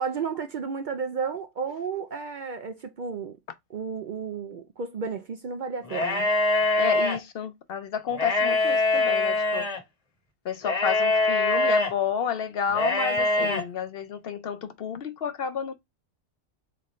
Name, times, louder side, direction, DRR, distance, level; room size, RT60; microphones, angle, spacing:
voice 1, 0.0-3.4 3.7-6.3, right 5 dB, 55° right, 0.6 m, -32 dB
sound 1, 5.9-7.2 8.1-9.8 10.6-11.9 12.7-13.6, left 2 dB, 35° left, 1.0 m, -23 dB
voice 2, 6.8-9.7 10.4-15.7, left 7 dB, 60° left, 0.7 m, -31 dB
3.8 x 3.2 x 4.1 m
omnidirectional pair, 1.2 m